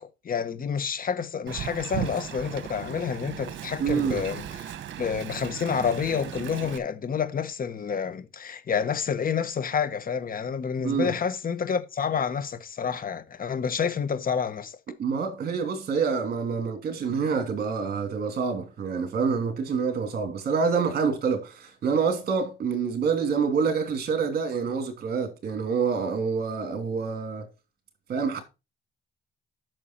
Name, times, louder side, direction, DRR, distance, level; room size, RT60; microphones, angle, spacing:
voice 1, 0.0-14.8, left 6 dB, 45° left, 1.2 m, -29 dB
Wind, 1.5-6.8, right 10 dB, 70° right, 1.1 m, -36 dB
voice 2, 3.8-4.2 10.8-11.1 15.0-27.5 28.1-28.4, right 5 dB, 50° right, 2.8 m, -27 dB
8.8 x 6.5 x 4.5 m
cardioid pair, 90°, 20 cm